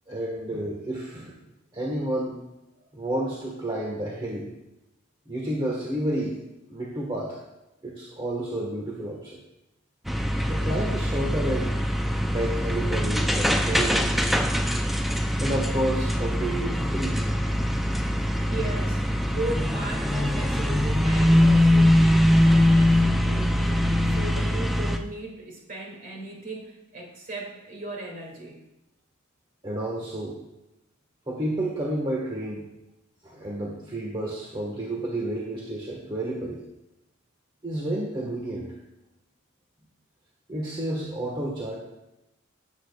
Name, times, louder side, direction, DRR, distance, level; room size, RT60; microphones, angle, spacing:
voice 1, 0.1-1.4 1.7-2.4 2.9-4.5 5.3-6.4 6.7-7.4 7.8-9.4 10.2-11.8 12.3-14.4 15.4-17.2 29.6-30.4 31.3-32.6 33.2-36.6 37.6-38.7 40.5-41.7, right 1 dB, 25° right, -3 dB, 1.5 m, -30 dB
sound 1, 10.1-25.0, equal, ahead, 0.5 m, -22 dB
voice 2, 18.1-28.6, right 1 dB, 40° right, -1 dB, 2.5 m, -37 dB
17.5 x 8.3 x 2.4 m, 0.93 s
head